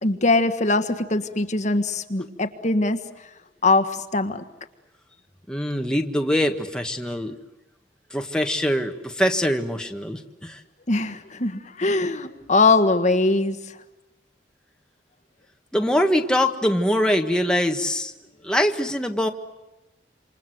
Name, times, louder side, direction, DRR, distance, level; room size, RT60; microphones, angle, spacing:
voice 1, 0.0-3.0 3.6-4.4 10.9-13.6, left 3 dB, 40° left, 8 dB, 1.6 m, -21 dB
voice 2, 5.5-7.4 8.1-10.6 15.7-18.1 18.4-19.3, equal, 5° left, 4 dB, 1.6 m, -23 dB
28.0 x 27.0 x 7.9 m, 0.98 s
head